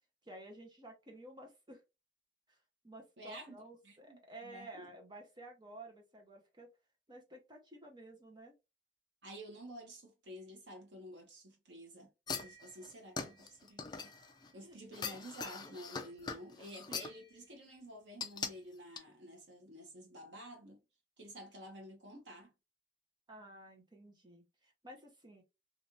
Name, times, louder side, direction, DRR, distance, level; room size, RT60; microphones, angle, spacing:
voice 1, 0.2-1.8 2.5-2.6 2.8-6.7 7.1-8.5 14.6-14.8 23.3-25.4, right 1 dB, 25° right, 0.8 m, -53 dB
voice 2, 3.2-4.9 9.2-14.1 14.5-20.8 21.2-22.5, equal, 80° right, 1.2 m, -51 dB
sound 1, 12.3-14.5 14.9-17.2 18.2-18.5 19.0-19.1, left 5 dB, 25° left, 0.4 m, -42 dB
3.1 x 2.5 x 2.6 m
head